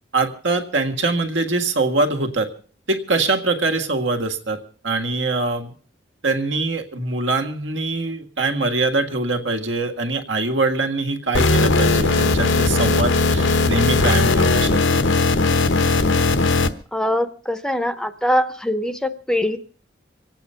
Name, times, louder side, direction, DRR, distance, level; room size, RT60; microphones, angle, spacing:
voice 1, 0.1-2.5 2.9-5.7 6.2-15.0, right 3 dB, 80° right, 5 dB, 1.9 m, -23 dB
sound 1, 11.3-16.7, left 3 dB, 90° left, 1.1 m, -18 dB
voice 2, 16.9-19.6, left 1 dB, 5° left, 10 dB, 0.7 m, -22 dB
24.5 x 8.9 x 5.6 m, 0.42 s
head